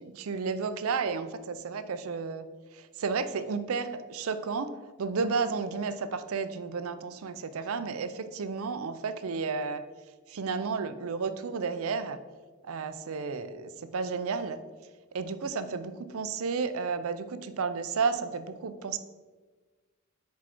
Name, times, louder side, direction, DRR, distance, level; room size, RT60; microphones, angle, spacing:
voice 1, 0.0-2.5 2.7-4.7 5.0-9.8 10.3-12.2 12.7-14.6 15.1-19.0, right 5 dB, 70° right, 11 dB, 0.5 m, -32 dB
6.2 x 4.7 x 4.4 m, 1.3 s
head